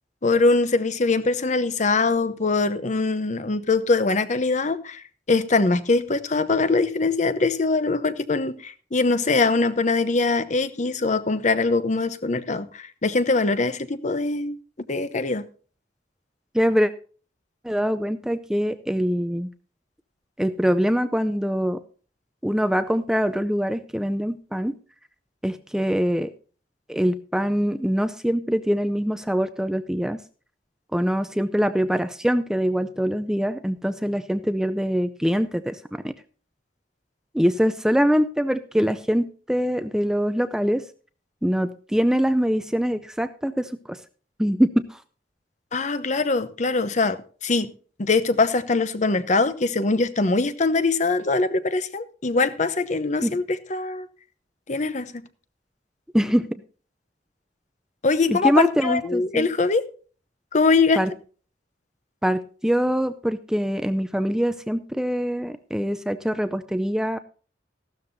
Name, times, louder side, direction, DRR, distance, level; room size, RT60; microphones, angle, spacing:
voice 1, 0.2-14.6 14.9-15.4 45.7-47.7 48.0-54.1 54.7-55.1 58.0-59.8 60.5-61.0, left 3 dB, 40° left, 0.8 m, -22 dB
voice 2, 16.5-16.9 17.6-19.5 20.4-21.8 22.4-24.7 25.4-26.3 26.9-30.2 30.9-36.1 37.3-40.8 41.4-44.0 44.4-45.0 53.2-53.3 56.1-56.6 58.3-59.5 61.0-61.1 62.2-67.2, equal, 5° right, 0.4 m, -23 dB
15.0 x 12.5 x 2.7 m
head